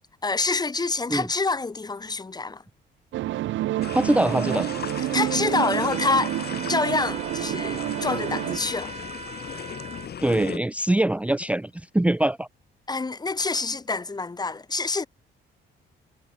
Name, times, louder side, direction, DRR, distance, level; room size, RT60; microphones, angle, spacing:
voice 1, 0.2-2.6 5.1-6.4 6.7-8.9 12.9-15.1, left 3 dB, 20° left, 0.9 m, -26 dB
sound 1, 3.1-8.6, right 15 dB, 75° right, 0.6 m, -28 dB
sound 2, 3.8-10.6, left 8 dB, 55° left, 3.0 m, -37 dB
voice 2, 3.9-4.7 10.2-12.5, right 1 dB, 5° right, 0.6 m, -23 dB
sound 3, 5.9-10.1, right 5 dB, 35° right, 4.3 m, -40 dB
cardioid pair, 90°, 20 cm